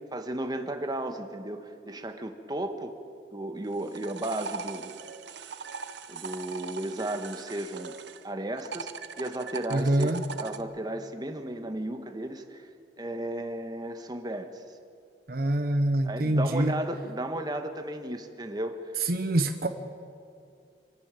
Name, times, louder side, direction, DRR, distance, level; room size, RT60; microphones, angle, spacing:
voice 1, 0.1-2.9 3.3-4.9 6.1-7.9 8.2-10.1 10.4-12.7 13.0-14.6 16.0-18.7, right 1 dB, 25° right, 6 dB, 1.3 m, -34 dB
sound 1, 3.6-8.2 8.6-10.6, right 5 dB, 85° right, 0.9 m, -40 dB
voice 2, 9.7-10.2 15.3-16.8 19.0-19.7, right 1 dB, 60° right, 8 dB, 0.9 m, -25 dB
26.0 x 12.0 x 9.0 m, 2.4 s
head